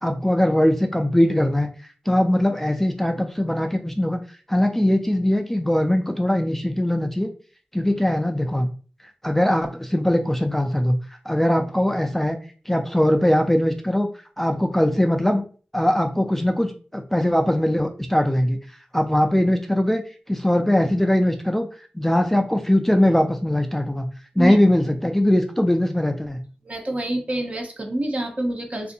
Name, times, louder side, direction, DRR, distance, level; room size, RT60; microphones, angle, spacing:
voice 1, 0.0-1.7 2.1-4.2 4.5-7.3 7.7-8.7 9.2-11.0 11.3-12.4 12.7-14.1 14.4-15.4 15.7-20.0 20.3-21.7 21.9-24.1 24.4-26.4, left 1 dB, 10° left, 5 dB, 0.3 m, -21 dB
voice 2, 26.6-28.9, right 1 dB, 40° right, 2 dB, 0.7 m, -27 dB
2.6 x 2.5 x 2.6 m, 0.39 s
cardioid pair, 45°, 3 cm